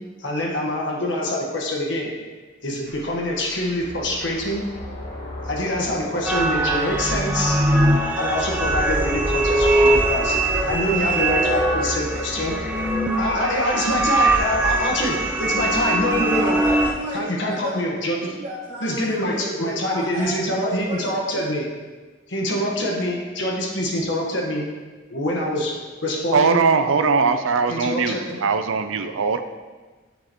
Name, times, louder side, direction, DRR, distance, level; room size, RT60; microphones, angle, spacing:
voice 1, 0.2-2.1 2.6-4.6 5.4-7.6 8.2-10.3 10.7-12.5 13.1-16.6 17.1-18.3 18.8-21.7 22.3-24.6 25.1-25.7 26.0-26.6 27.7-28.4, left 1 dB, 70° left, -1 dB, 1.3 m, -25 dB
sound 1, 2.9-13.2, left 1 dB, 40° left, 1.3 m, -36 dB
sound 2, 6.3-16.9, right 2 dB, 10° right, 0.4 m, -21 dB
voice 2, 10.2-13.5 16.3-17.8 18.1-21.1, right 1 dB, 40° right, -8 dB, 2.3 m, -34 dB
voice 3, 26.3-29.4, right 5 dB, 85° right, 9 dB, 0.5 m, -20 dB
7.4 x 6.5 x 3.0 m, 1.3 s
head